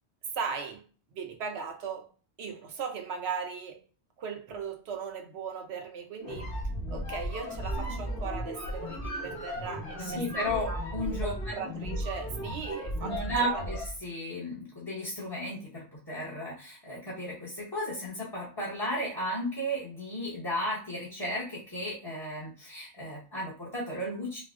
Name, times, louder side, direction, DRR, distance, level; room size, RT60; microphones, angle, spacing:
voice 1, 0.3-0.8 1.1-2.1 2.4-3.8 4.2-6.5 6.9-10.8 11.2-13.8, right 6 dB, 75° right, 0.9 m, -38 dB
sound 1, 6.2-14.0, equal, 85° left, 1.2 m, -35 dB
sound 2, 7.6-9.1, right 2 dB, 45° right, 0.5 m, -38 dB
voice 2, 10.0-11.3 13.0-24.4, equal, 25° left, 0.8 m, -34 dB
4.2 x 2.1 x 2.4 m
omnidirectional pair, 1.1 m